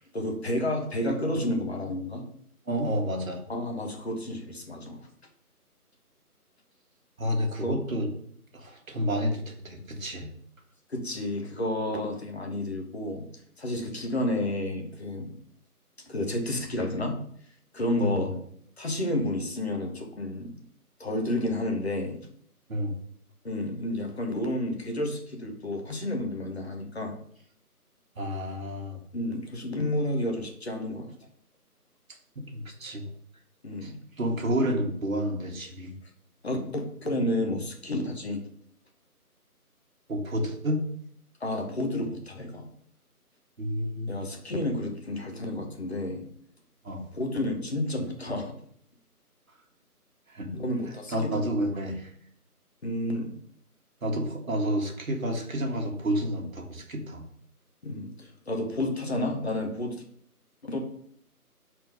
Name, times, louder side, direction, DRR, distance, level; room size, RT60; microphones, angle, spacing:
voice 1, 0.1-2.3 3.5-5.0 7.6-7.7 10.9-13.2 13.6-15.3 16.1-17.2 17.7-18.4 18.8-20.5 21.0-22.2 23.4-27.1 29.1-31.1 33.6-34.0 36.4-38.4 41.4-42.7 44.1-46.2 47.1-48.5 50.5-51.4 52.8-53.3 57.8-60.0 60.6-60.8, left 1 dB, 45° left, 2 dB, 1.3 m, -30 dB
voice 2, 2.7-3.4 7.2-8.1 8.5-10.3 18.0-18.3 22.7-22.9 28.2-29.0 32.3-33.1 33.8-33.9 34.2-35.9 40.1-40.8 43.6-44.1 46.8-47.1 50.3-50.5 51.1-52.1 54.0-57.3, equal, 60° right, 1 dB, 1.7 m, -30 dB
5.1 x 4.4 x 5.2 m, 0.64 s
figure-of-eight pair, 170°, 46 cm